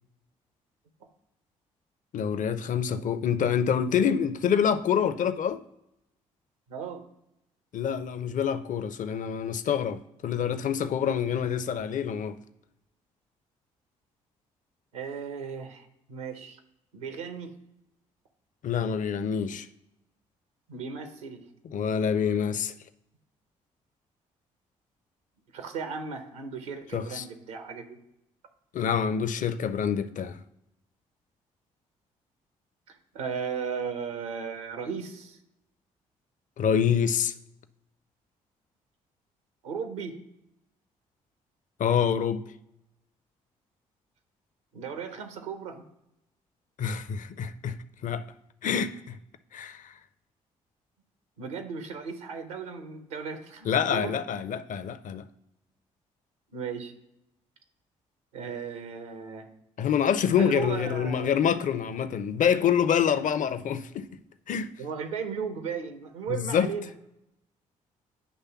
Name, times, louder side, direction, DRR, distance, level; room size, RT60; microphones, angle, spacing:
voice 1, 2.1-5.6 7.7-12.4 18.6-19.7 21.7-22.7 26.9-27.2 28.7-30.4 36.6-37.3 41.8-42.4 46.8-47.8 48.0-48.2 48.6-49.2 49.5-49.9 53.6-55.3 59.8-64.1 64.5-64.7 66.3-66.7, left 8 dB, 50° left, 0.6 m, -26 dB
voice 2, 6.7-7.0 14.9-16.6 16.9-17.5 20.7-21.4 25.5-28.0 32.9-35.4 39.6-40.2 44.7-45.8 51.4-54.1 56.5-56.9 58.3-59.5 60.3-61.3 64.8-66.9, right 6 dB, 85° right, 0.9 m, -36 dB
9.6 x 3.3 x 5.8 m
hypercardioid pair, 45°, 17 cm